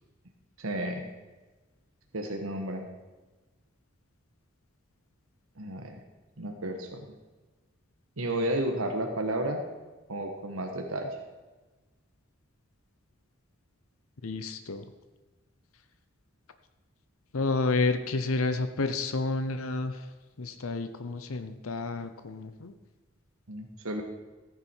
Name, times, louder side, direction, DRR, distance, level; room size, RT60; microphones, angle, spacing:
voice 1, 0.6-1.1 2.1-2.9 5.6-6.0 6.4-7.1 8.2-9.6 10.1-11.1 23.5-24.0, right 1 dB, 80° right, 3 dB, 1.4 m, -32 dB
voice 2, 14.2-14.8 17.3-20.1 20.4-22.7, left 3 dB, 80° left, 9 dB, 0.8 m, -30 dB
14.5 x 9.6 x 4.6 m, 1.2 s
head